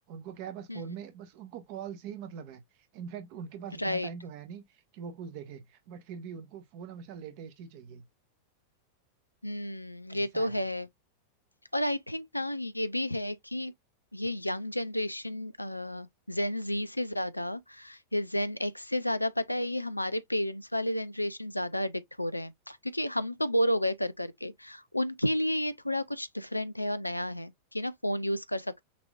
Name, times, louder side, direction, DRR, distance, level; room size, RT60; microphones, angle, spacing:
voice 1, 0.1-2.6 2.9-8.0 10.1-10.6, right 7 dB, 45° right, 1.2 m, -43 dB
voice 2, 3.8-4.1 9.4-10.9 11.7-13.7 14.1-28.8, left 1 dB, 85° left, 0.5 m, -31 dB
6.0 x 2.9 x 2.4 m
figure-of-eight pair, 90°, 0 cm